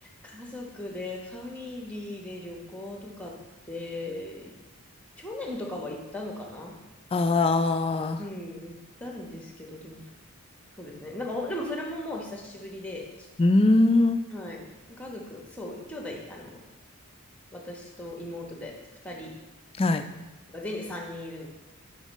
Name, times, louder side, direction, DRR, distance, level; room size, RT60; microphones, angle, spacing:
voice 1, 0.0-3.3 3.7-4.6 5.2-6.7 8.2-10.0 10.8-13.3 14.3-14.6 14.9-16.6 17.5-18.7 19.0-19.3 19.9-20.0 20.5-21.5, left 1 dB, 5° left, 0 dB, 1.0 m, -37 dB
voice 2, 7.1-8.2 13.4-14.2 19.8-20.0, left 2 dB, 25° left, 8 dB, 0.3 m, -21 dB
7.2 x 5.2 x 4.1 m, 1.1 s
head